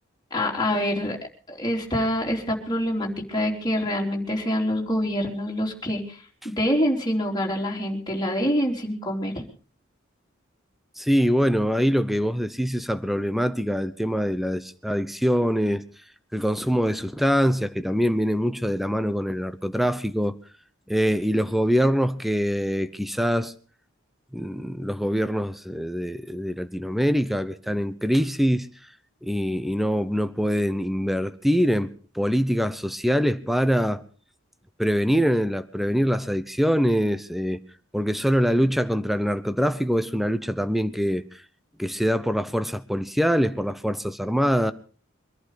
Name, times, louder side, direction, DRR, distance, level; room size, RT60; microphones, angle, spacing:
voice 1, 0.3-1.2 1.5-6.2 6.4-9.3, equal, 20° left, 3.8 m, -25 dB
voice 2, 11.0-15.8 16.3-20.4 20.9-23.5 24.3-28.7 29.2-34.0 34.8-37.6 37.9-41.4 41.8-44.7, equal, ahead, 0.9 m, -24 dB
24.0 x 11.5 x 5.1 m
head